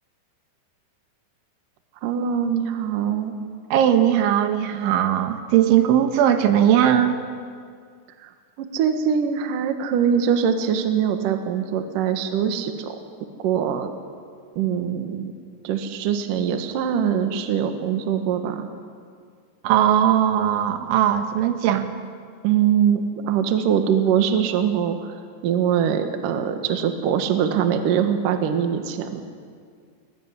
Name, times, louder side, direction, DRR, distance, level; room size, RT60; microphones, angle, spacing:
voice 1, 2.0-3.3 8.2-8.3 8.6-13.0 13.4-13.9 14.6-15.3 15.6-18.7 22.4-25.1 25.4-29.2, right 8 dB, 60° right, 7 dB, 2.6 m, -23 dB
voice 2, 3.7-7.2 19.6-21.9, right 10 dB, 80° right, 7 dB, 3.7 m, -19 dB
22.0 x 19.5 x 9.8 m, 2.1 s
omnidirectional pair, 5.3 m